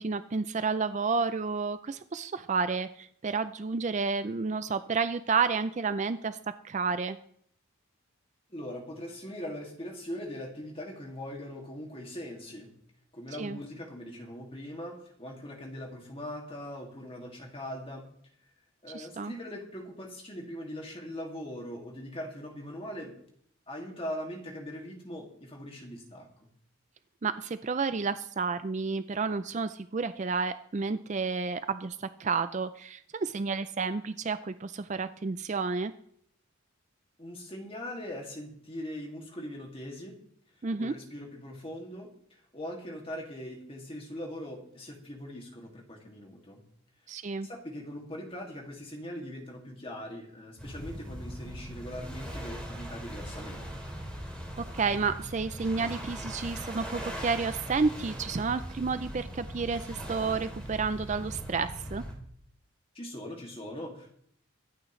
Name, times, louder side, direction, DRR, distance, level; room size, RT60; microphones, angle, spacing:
voice 1, 0.0-6.4 6.6-7.2 13.4-13.6 18.9-19.3 27.2-35.9 40.6-40.9 47.1-47.5 54.7-62.0, right 4 dB, 35° right, 12 dB, 0.4 m, -31 dB
voice 2, 8.5-12.7 13.1-18.1 18.8-23.2 23.7-26.5 37.2-40.1 40.8-46.6 47.4-53.8 62.9-64.2, equal, 25° left, 1 dB, 2.3 m, -41 dB
sound 1, 50.6-62.1, equal, 5° left, 2.9 m, -40 dB
24.5 x 9.0 x 3.2 m, 0.67 s
head